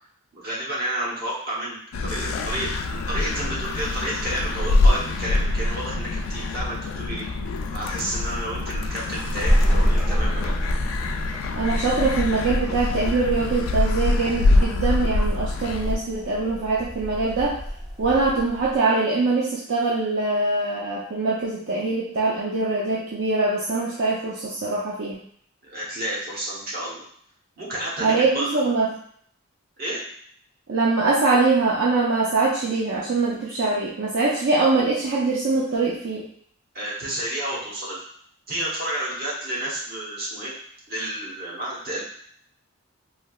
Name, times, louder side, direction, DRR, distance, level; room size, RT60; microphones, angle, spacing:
voice 1, 0.3-7.3 7.7-10.6 25.6-27.1 27.6-28.6 29.8-30.1 36.7-38.0 38.5-40.5 40.9-42.0, right 1 dB, 45° right, -6 dB, 1.0 m, -31 dB
sound 1, 1.9-16.0, left 2 dB, 90° left, 0.3 m, -25 dB
sound 2, 9.4-18.8, equal, ahead, 0.4 m, -28 dB
voice 2, 11.5-17.6 18.0-25.2 28.0-28.9 30.7-36.3, right 3 dB, 65° right, -6 dB, 0.5 m, -23 dB
3.2 x 2.7 x 2.3 m, 0.63 s
head